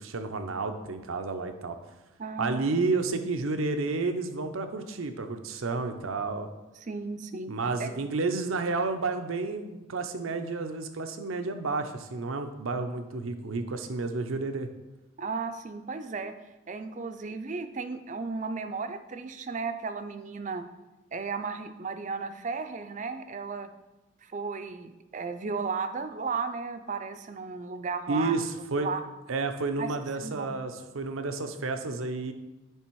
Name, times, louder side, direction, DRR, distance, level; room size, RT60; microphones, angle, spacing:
voice 1, 0.0-1.8 2.4-6.5 7.5-14.7 28.1-28.9 29.3-32.3, right 3 dB, 85° right, 7 dB, 0.7 m, -31 dB
voice 2, 2.2-2.6 6.9-7.5 7.8-8.0 15.2-16.4 16.7-20.6 21.1-23.7 24.2-28.4 28.8-29.0 29.8-29.9 30.2-30.6, right 4 dB, 35° right, 9 dB, 0.4 m, -34 dB
10.0 x 3.4 x 4.6 m, 1.0 s
head